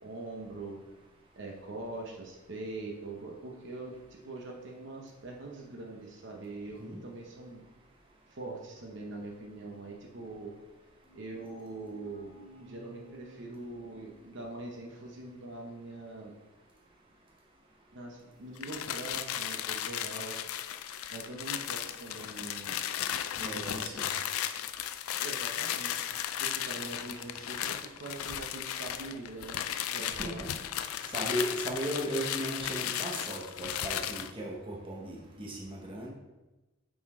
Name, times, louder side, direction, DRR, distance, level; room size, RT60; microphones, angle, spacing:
voice 1, 0.0-0.8 1.3-7.6 8.3-10.5 11.1-12.3 12.6-16.3 17.9-20.4 21.1-22.8 23.4-23.9 25.2-26.0 26.4-29.6 29.9-30.5, right 2 dB, 55° right, 0 dB, 0.8 m, -43 dB
sound 1, 11.0-14.8, left 1 dB, 10° left, 1.6 m, -56 dB
sound 2, 18.6-34.3, left 10 dB, 85° left, 0.4 m, -35 dB
voice 2, 23.4-24.1 30.1-30.5 31.1-36.1, equal, 25° right, -2 dB, 1.0 m, -36 dB
6.0 x 4.3 x 4.2 m, 1.1 s
head